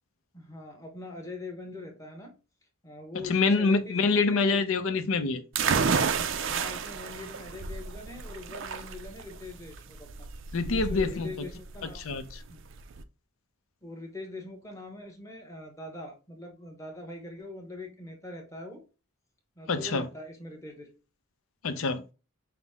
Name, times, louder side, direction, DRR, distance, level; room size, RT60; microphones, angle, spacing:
voice 1, 0.3-2.3 2.8-4.6 6.5-10.3 10.7-12.0 12.5-12.6 13.8-18.8 19.6-20.9, left 2 dB, 15° left, 0.9 m, -42 dB
voice 2, 3.3-5.4 10.5-11.3 12.0-12.2 19.7-20.1 21.6-22.0, left 4 dB, 70° left, 0.6 m, -25 dB
sound 1, 5.5-13.0, right 5 dB, 60° right, 0.4 m, -31 dB
5.9 x 2.1 x 3.4 m
head